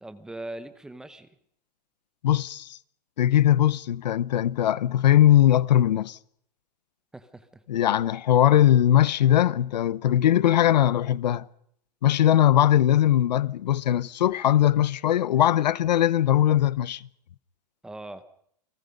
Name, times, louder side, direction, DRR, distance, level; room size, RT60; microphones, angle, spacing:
voice 1, 0.0-1.3 7.1-7.8 17.8-18.2, right 1 dB, 5° right, 0.8 m, -40 dB
voice 2, 2.2-2.8 3.2-6.2 7.7-11.5 12.0-17.0, left 11 dB, 85° left, 0.9 m, -20 dB
29.0 x 19.0 x 5.3 m
supercardioid pair, 170°, 21 cm